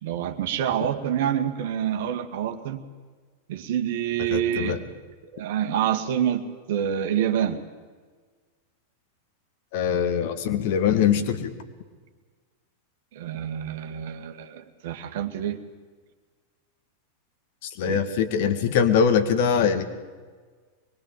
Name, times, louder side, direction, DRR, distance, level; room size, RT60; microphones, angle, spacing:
voice 1, 0.0-2.8 3.5-4.8 5.3-6.4 6.7-7.6 13.1-15.6 17.9-18.0, right 10 dB, 55° right, 7 dB, 2.0 m, -27 dB
voice 2, 4.3-4.8 9.7-11.5 17.6-19.8, left 7 dB, 50° left, 10 dB, 2.2 m, -22 dB
24.5 x 22.0 x 7.7 m, 1.5 s
figure-of-eight pair, 90°, 0 cm